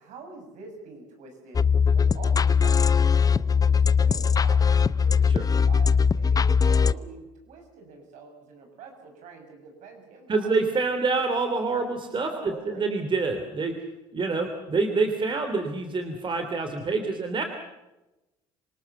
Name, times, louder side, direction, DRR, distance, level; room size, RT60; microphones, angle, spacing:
voice 1, 0.0-1.6 1.9-10.5 12.1-12.9, right 4 dB, 65° right, 4 dB, 7.0 m, -45 dB
sound 1, 1.5-6.9, left 6 dB, 25° left, 0.7 m, -20 dB
voice 2, 10.3-13.7 14.1-17.4, right 3 dB, 40° right, 6 dB, 3.1 m, -26 dB
26.0 x 19.0 x 6.9 m, 1.0 s
hypercardioid pair, 70°, 13 cm